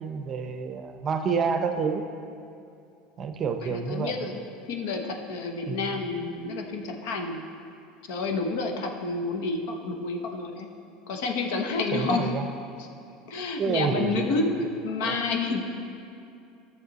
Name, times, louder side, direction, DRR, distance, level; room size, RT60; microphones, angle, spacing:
voice 1, 0.0-2.1 3.2-4.2 5.7-6.0 11.9-12.5 13.6-14.3 15.0-15.2, right 5 dB, 35° right, 7 dB, 0.7 m, -28 dB
voice 2, 3.6-4.4 4.7-7.4 8.0-10.7 11.1-12.3 13.3-15.7, left 3 dB, 75° left, 3 dB, 1.0 m, -29 dB
11.0 x 6.9 x 4.1 m, 2.5 s
supercardioid pair, 125°, 0 cm